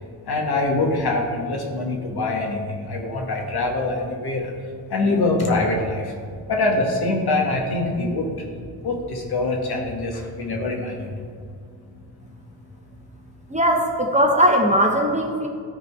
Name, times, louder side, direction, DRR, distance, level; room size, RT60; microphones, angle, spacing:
voice 1, 0.3-4.5 4.9-6.1 6.5-8.3 8.8-11.1, left 2 dB, 55° left, 1 dB, 1.7 m, -24 dB
voice 2, 13.5-15.5, equal, 15° right, 1 dB, 1.0 m, -19 dB
12.5 x 4.4 x 3.4 m, 2.2 s
cardioid pair, 75°, 45 cm